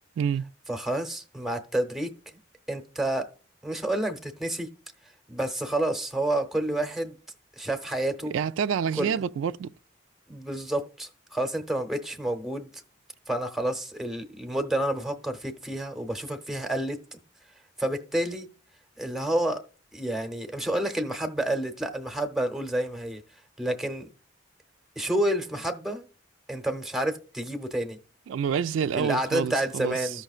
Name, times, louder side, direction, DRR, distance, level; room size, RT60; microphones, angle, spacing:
voice 1, 0.2-0.5 8.3-9.7 28.3-30.2, right 7 dB, 85° right, 0.3 m, -28 dB
voice 2, 0.7-2.1 2.7-3.3 3.6-4.7 5.3-7.2 7.6-8.3 9.0-9.1 10.3-12.8 13.3-17.2 17.8-18.5 19.0-19.6 19.9-23.2 23.6-24.1 25.0-26.0 26.5-28.0 28.9-30.2, right 1 dB, ahead, 0.8 m, -29 dB
14.0 x 5.7 x 2.4 m
head